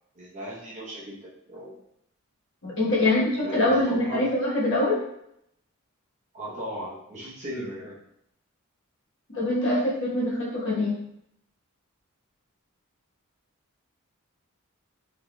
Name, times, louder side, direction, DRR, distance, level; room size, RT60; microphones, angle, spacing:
voice 1, 0.1-1.8 2.8-4.2 6.3-8.0, equal, 30° right, -7 dB, 0.9 m, -37 dB
voice 2, 2.6-5.0 9.3-11.0, left 1 dB, 55° left, -7 dB, 1.2 m, -24 dB
3.4 x 2.9 x 2.3 m, 0.77 s
head